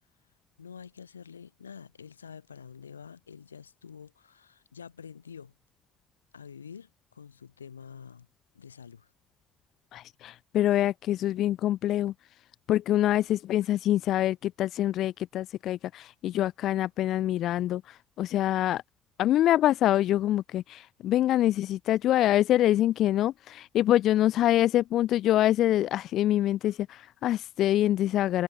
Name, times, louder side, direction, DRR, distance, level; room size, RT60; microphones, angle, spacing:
voice 1, 0.6-5.5 6.3-8.3 8.5-9.1, left 7 dB, 80° left, 3.4 m, -47 dB
voice 2, 9.9-12.1 12.7-18.8 19.2-28.4, left 13 dB, 55° left, 0.7 m, -25 dB
figure-of-eight pair, 50°, 0 cm